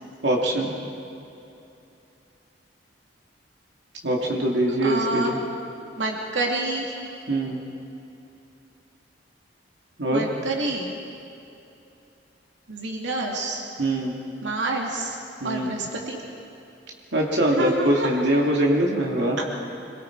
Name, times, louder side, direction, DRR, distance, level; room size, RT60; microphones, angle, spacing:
voice 1, 0.2-0.7 4.0-5.4 7.3-7.6 10.0-10.3 13.8-14.2 15.4-15.7 17.1-19.4, right 1 dB, 70° right, -1 dB, 2.6 m, -23 dB
voice 2, 4.8-5.3 6.0-6.9 10.1-10.9 12.7-13.6 14.4-15.2 15.4-16.2 17.5-18.2, right 2 dB, 90° right, 0 dB, 2.6 m, -28 dB
26.0 x 23.0 x 4.8 m, 2.8 s
head